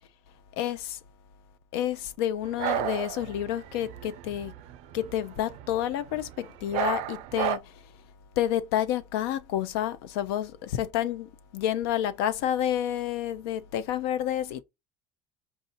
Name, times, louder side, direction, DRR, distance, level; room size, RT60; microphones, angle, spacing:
voice 1, 0.6-1.0 1.7-4.5 4.9-7.8 8.4-14.6, left 11 dB, 85° left, 0.5 m, -29 dB
sound 1, 2.4-6.4 6.7-7.6, right 13 dB, 65° right, 0.5 m, -33 dB
4.7 x 2.7 x 4.0 m
supercardioid pair, 115°, 12 cm